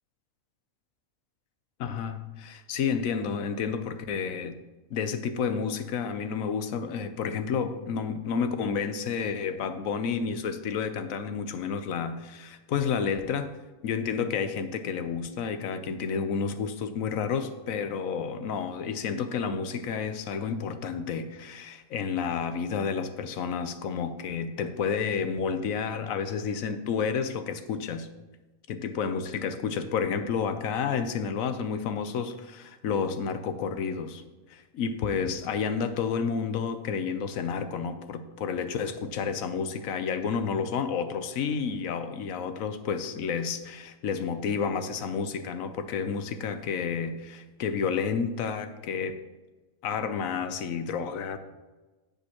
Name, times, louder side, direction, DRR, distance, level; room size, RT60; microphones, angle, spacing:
voice 1, 1.8-4.6 4.9-13.5 13.8-28.1 28.7-34.2 34.5-49.2 49.8-51.4, left 6 dB, 85° left, 9 dB, 1.1 m, -30 dB
16.0 x 5.3 x 3.0 m, 1.2 s
omnidirectional pair, 1.4 m